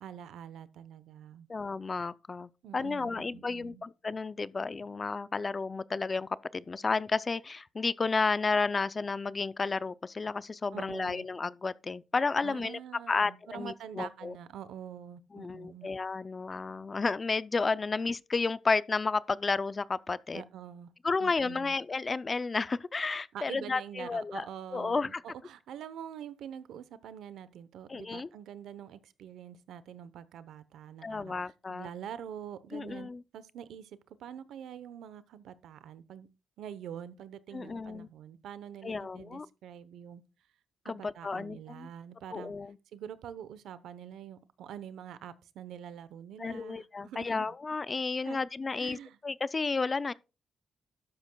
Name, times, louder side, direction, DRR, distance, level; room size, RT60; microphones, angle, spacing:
voice 1, 0.0-1.5 2.6-3.8 10.7-11.3 12.4-15.9 20.3-20.9 21.2-21.7 23.3-31.4 31.7-36.3 36.6-40.2 40.8-42.5 42.9-47.5 48.2-48.4 48.8-49.2, right 9 dB, 90° right, 0.8 m, -45 dB
voice 2, 1.5-12.8 13.1-14.3 15.3-20.4 21.0-24.5 24.7-25.2 27.9-28.3 31.0-31.9 32.7-33.2 37.5-38.1 38.8-39.5 40.9-41.9 42.3-42.8 46.4-49.0 49.2-50.1, left 4 dB, 25° left, 0.4 m, -32 dB
12.5 x 11.5 x 2.3 m
cardioid pair, 130°, 0 cm